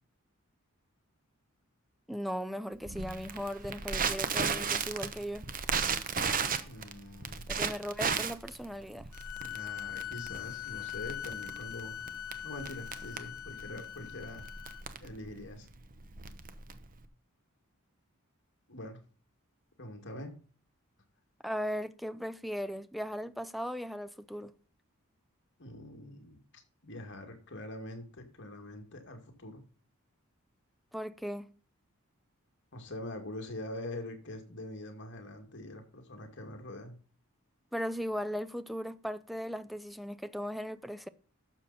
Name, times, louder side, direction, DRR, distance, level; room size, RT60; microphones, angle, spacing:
voice 1, 2.1-5.5 7.5-9.1 21.4-24.5 30.9-31.5 37.7-41.1, equal, ahead, 0.5 m, -37 dB
Crackle, 2.8-17.0, right 6 dB, 40° right, 1.0 m, -35 dB
voice 2, 6.6-7.5 9.4-12.0 12.4-14.5 15.0-15.7 18.7-19.0 19.8-20.4 25.6-29.6 32.7-37.0, left 1 dB, 55° left, 2.3 m, -44 dB
sound 1, 9.1-14.8, left 11 dB, 70° left, 1.0 m, -42 dB
12.0 x 7.1 x 4.2 m
head